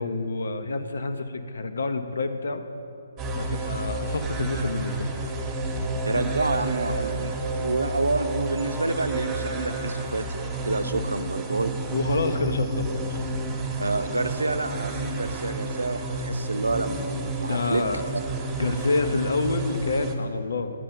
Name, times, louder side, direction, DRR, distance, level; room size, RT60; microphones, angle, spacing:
voice 1, 0.0-2.6 3.3-5.1 5.9-6.0 11.9-13.2 17.5-18.1 18.6-20.7, left 3 dB, 60° left, 9 dB, 0.8 m, -28 dB
sound 1, 3.2-20.2, right 2 dB, 15° right, 1.1 m, -30 dB
voice 2, 6.1-10.2 10.7-11.7 13.8-17.8, right 3 dB, 75° right, 9 dB, 0.7 m, -28 dB
9.1 x 7.6 x 8.5 m, 2.9 s
figure-of-eight pair, 135°, 0 cm